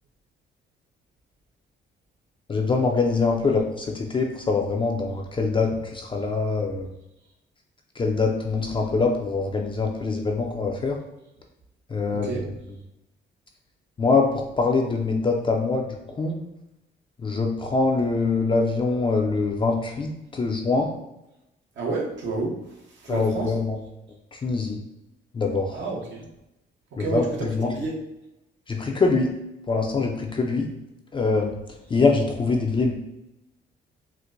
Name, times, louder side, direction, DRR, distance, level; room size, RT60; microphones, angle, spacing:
voice 1, 2.5-6.9 8.0-11.0 11.9-12.3 14.0-15.9 16.1-16.4 17.2-20.9 23.1-23.8 24.3-24.8 25.3-25.7 27.1-27.2 27.6-27.7 28.7-29.3 29.7-30.7 31.1-31.6 31.9-32.9, left 4 dB, 25° left, 1 dB, 0.4 m, -24 dB
voice 2, 12.1-12.5 21.7-23.6 25.7-26.3 26.9-28.0, right 3 dB, 65° right, -2 dB, 1.0 m, -30 dB
4.4 x 2.1 x 2.5 m, 0.90 s
cardioid pair, 90°, 20 cm